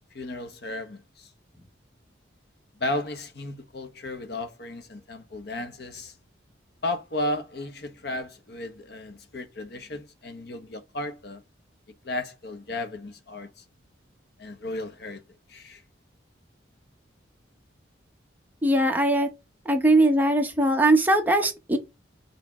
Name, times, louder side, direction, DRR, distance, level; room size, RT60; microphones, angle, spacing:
voice 1, 0.1-1.3 2.8-6.1 6.8-11.4 12.0-13.6 14.4-15.2 15.5-15.8, left 2 dB, 55° left, 0.9 m, -34 dB
voice 2, 18.6-19.3 19.7-21.8, right 1 dB, 10° right, 0.9 m, -20 dB
6.1 x 3.3 x 5.9 m
head